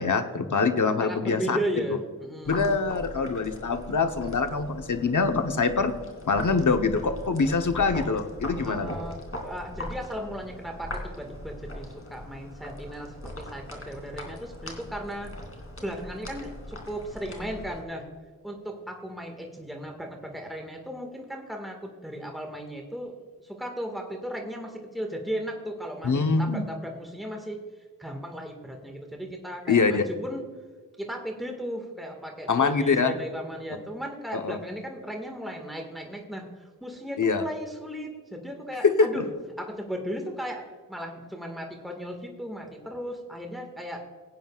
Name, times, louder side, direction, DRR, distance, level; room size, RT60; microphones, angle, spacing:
voice 1, 0.0-1.6 2.5-5.9 6.3-9.0 26.0-26.7 29.7-30.0 32.5-33.2 34.3-34.6 37.2-37.4 38.8-39.2, left 4 dB, 65° left, 7 dB, 1.0 m, -24 dB
voice 2, 1.0-2.6 8.6-15.3 15.8-18.1 18.4-23.1 23.4-27.6 28.0-30.4 31.0-39.2 39.6-40.6 40.9-44.0, equal, ahead, 2 dB, 1.8 m, -36 dB
sound 1, 2.4-17.8, left 1 dB, 45° left, 2.9 m, -40 dB
18.0 x 9.3 x 2.4 m, 1.5 s
cardioid pair, 50°, 33 cm